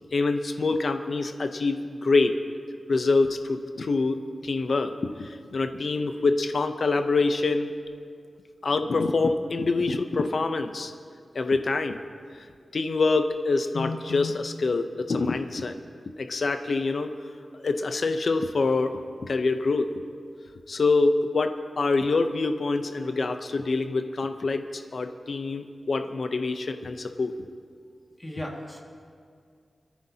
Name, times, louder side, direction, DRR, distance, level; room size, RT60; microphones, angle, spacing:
voice 1, 0.1-2.4 2.9-7.7 8.6-10.9 11.3-12.0 12.7-15.8 16.2-17.1 17.6-19.9 20.7-27.3, left 3 dB, 55° left, 7 dB, 0.6 m, -25 dB
voice 2, 12.3-12.6 28.2-28.8, equal, 15° left, -1 dB, 1.9 m, -38 dB
23.0 x 14.0 x 2.8 m, 2.2 s
wide cardioid pair, 135°, 0 cm